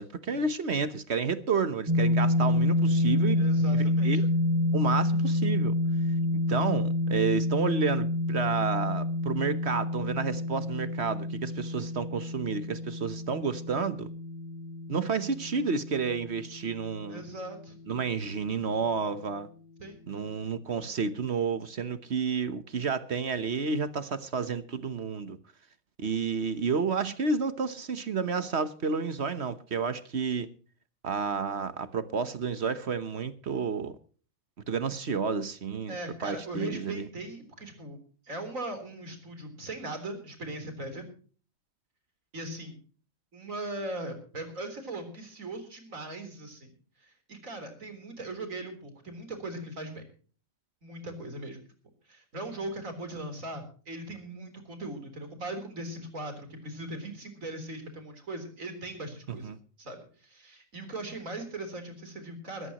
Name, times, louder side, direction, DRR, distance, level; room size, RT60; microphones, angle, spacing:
voice 1, 0.0-4.2 4.7-5.7 6.5-14.1 14.9-17.2 17.9-19.5 20.1-25.4 26.0-30.5 31.0-33.9 34.7-36.0 36.2-37.1 59.3-59.6, right 5 dB, 55° right, 1.3 m, -30 dB
sound 1, 1.9-17.8, left 1 dB, 20° right, 4.9 m, -28 dB
voice 2, 3.4-4.3 17.1-17.8 19.8-20.0 35.9-38.0 38.2-41.1 42.3-42.8 43.3-46.7 47.0-50.0 50.8-51.6 52.1-59.5 59.8-62.7, right 2 dB, 80° right, 4.3 m, -39 dB
20.5 x 15.0 x 3.0 m
omnidirectional pair, 1.4 m